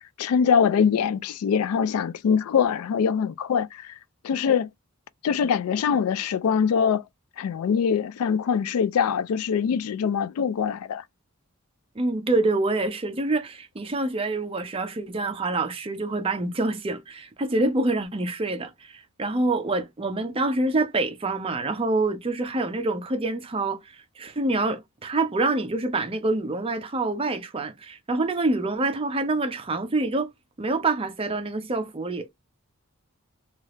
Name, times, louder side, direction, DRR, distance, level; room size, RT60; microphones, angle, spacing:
voice 1, 0.2-3.9 4.2-4.7 5.2-7.0 7.4-11.0, left 7 dB, 75° left, 0.3 m, -23 dB
voice 2, 12.0-30.3 30.6-32.3, right 2 dB, 25° right, 0.5 m, -26 dB
3.1 x 2.4 x 3.0 m
head